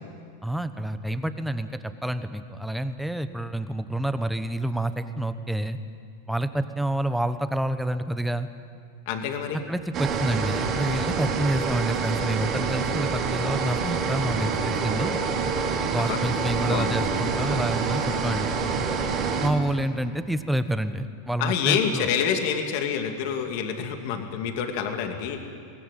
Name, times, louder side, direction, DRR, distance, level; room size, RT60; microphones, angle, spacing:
voice 1, 0.4-5.8 6.3-8.5 9.7-15.2 15.9-18.8 19.4-22.1, right 1 dB, 5° right, 10 dB, 1.0 m, -28 dB
voice 2, 9.1-9.6 16.0-16.2 16.7-17.0 21.4-25.4, left 7 dB, 60° left, 4 dB, 2.5 m, -27 dB
sound 1, 9.9-19.5, right 5 dB, 35° right, 3.0 m, -27 dB
22.0 x 17.0 x 9.1 m, 2.3 s
supercardioid pair, 125°, 0 cm